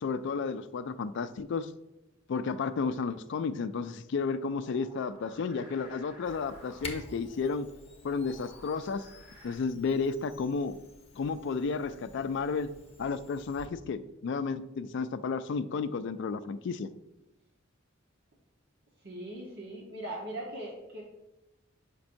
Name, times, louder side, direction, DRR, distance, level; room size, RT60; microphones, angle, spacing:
voice 1, 0.0-1.7 2.3-7.7 8.0-9.1 9.4-10.8 11.2-12.7 13.0-16.9, left 5 dB, 60° left, 0.3 m, -32 dB
sound 1, 4.5-9.5, left 1 dB, 10° right, 1.8 m, -56 dB
Camera, 6.2-13.7, left 3 dB, 30° left, 0.8 m, -49 dB
voice 2, 19.0-21.0, right 1 dB, 55° right, 1.0 m, -40 dB
7.1 x 5.2 x 2.6 m
head